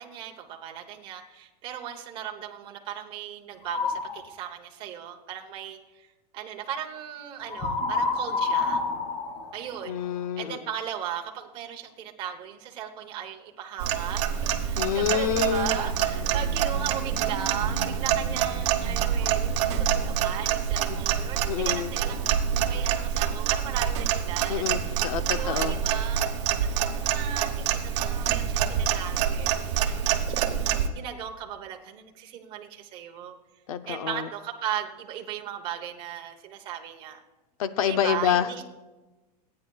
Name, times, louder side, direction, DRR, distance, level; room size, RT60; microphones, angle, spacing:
voice 1, 0.0-6.1 6.3-8.8 9.5-10.0 10.4-22.2 22.7-25.0 25.3-26.2 26.5-33.3 33.9-37.2 37.9-38.6, right 9 dB, 25° right, 3 dB, 1.0 m, -37 dB
sound 1, 3.6-4.2 7.5-10.2, left 4 dB, 25° left, 2.1 m, -28 dB
voice 2, 9.8-10.6 14.8-15.9 16.3-16.4 20.9-21.0 21.5-21.9 24.5-25.8 33.7-34.3 37.6-38.5, left 9 dB, 60° left, 11 dB, 0.7 m, -27 dB
Clock, 13.8-30.9, right 9 dB, 45° right, 1.1 m, -26 dB
27.5 x 9.7 x 2.4 m, 1.2 s
supercardioid pair, 175°, 21 cm